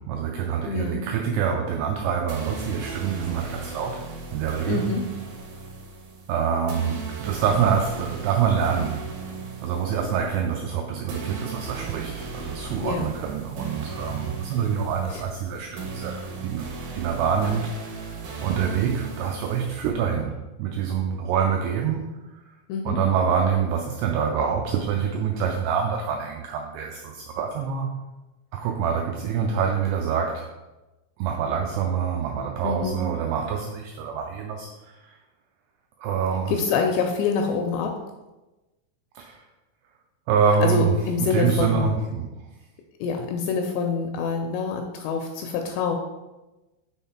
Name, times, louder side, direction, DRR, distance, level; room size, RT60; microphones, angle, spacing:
voice 1, 0.0-4.0 4.3-4.9 6.3-9.2 9.6-22.2 22.9-28.0 28.5-30.5 31.2-35.1 36.0-36.6 39.2-39.4 40.3-42.3, right 7 dB, 85° right, 2 dB, 2.3 m, -26 dB
voice 2, 0.7-1.0 4.7-5.0 12.8-13.1 22.7-23.0 32.6-33.0 36.5-37.9 40.6-41.9 43.0-46.0, left 5 dB, 85° left, 4 dB, 2.6 m, -26 dB
sound 1, 2.3-19.9, right 4 dB, 65° right, 2.5 m, -37 dB
6.3 x 3.7 x 4.2 m, 1.1 s
omnidirectional pair, 5.2 m